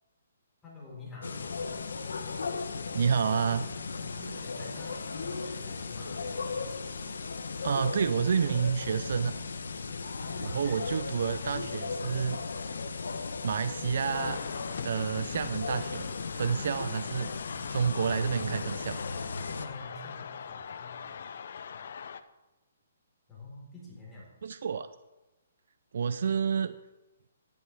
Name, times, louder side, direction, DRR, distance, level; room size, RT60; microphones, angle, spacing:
voice 1, 0.6-1.7 3.9-6.1 10.1-10.9 19.5-21.2 23.3-24.3, left 2 dB, 10° left, -6 dB, 4.5 m, -47 dB
sound 1, 1.2-19.7, left 4 dB, 85° left, 1.1 m, -36 dB
voice 2, 2.9-3.7 7.6-9.4 10.4-12.4 13.4-14.4 14.8-16.1 16.3-17.3 17.7-19.0 24.4-24.9 25.9-26.8, right 6 dB, 65° right, 13 dB, 0.5 m, -29 dB
sound 2, 14.1-22.2, left 7 dB, 60° left, 0.7 m, -42 dB
12.5 x 11.5 x 3.6 m, 1.0 s
hypercardioid pair, 155°, 0 cm